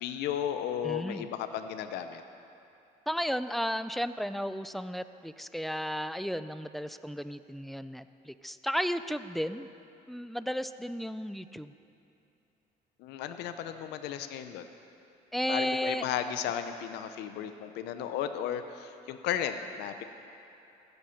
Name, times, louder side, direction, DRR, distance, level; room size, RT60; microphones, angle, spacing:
voice 1, 0.0-2.2 13.0-14.7 15.5-20.0, left 9 dB, 85° left, 9 dB, 0.6 m, -34 dB
voice 2, 0.8-1.3 3.1-9.7 10.1-11.7 15.3-16.1, equal, ahead, 12 dB, 0.3 m, -34 dB
15.5 x 8.0 x 5.7 m, 2.7 s
cardioid pair, 110°, 17 cm